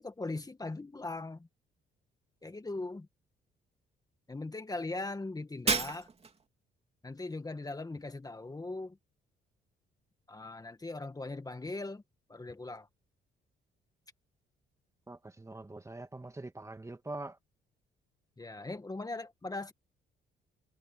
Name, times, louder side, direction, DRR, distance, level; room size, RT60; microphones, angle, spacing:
voice 1, 0.0-1.5 2.4-3.1 4.3-6.1 7.0-9.0 10.3-12.0 12.3-12.9 18.4-19.7, left 2 dB, 20° left, 1.9 m, -39 dB
Shatter, 5.7-6.5, right 4 dB, 30° right, 3.0 m, -31 dB
voice 2, 15.1-17.4, right 2 dB, 15° right, 2.0 m, -43 dB
cardioid pair, 90°, 20 cm